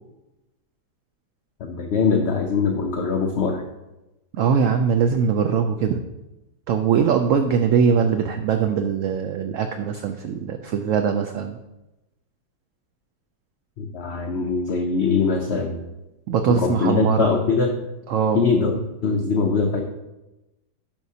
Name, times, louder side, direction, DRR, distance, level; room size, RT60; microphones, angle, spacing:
voice 1, 1.6-3.6 13.8-15.8 16.5-17.7 18.3-19.8, left 4 dB, 60° left, 2 dB, 0.7 m, -22 dB
voice 2, 4.3-6.0 6.7-11.6 16.3-17.3 18.1-18.4, right 7 dB, 70° right, 6 dB, 0.7 m, -21 dB
10.5 x 6.1 x 2.7 m, 0.99 s
omnidirectional pair, 1.8 m